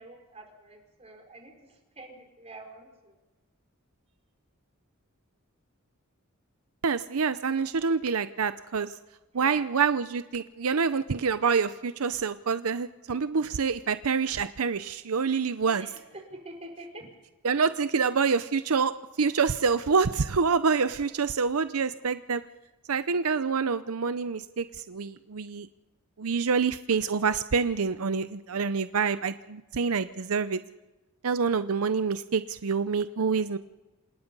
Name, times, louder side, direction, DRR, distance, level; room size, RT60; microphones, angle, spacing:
voice 1, 0.0-1.5 1.9-3.1 9.3-9.7 15.6-17.1, right 2 dB, 30° right, 3 dB, 4.8 m, -46 dB
voice 2, 6.8-8.9 9.3-15.9 17.4-22.4 22.9-25.7 26.2-30.6 31.2-33.6, right 5 dB, 85° right, 12 dB, 0.7 m, -27 dB
27.5 x 18.5 x 5.4 m, 1.1 s
head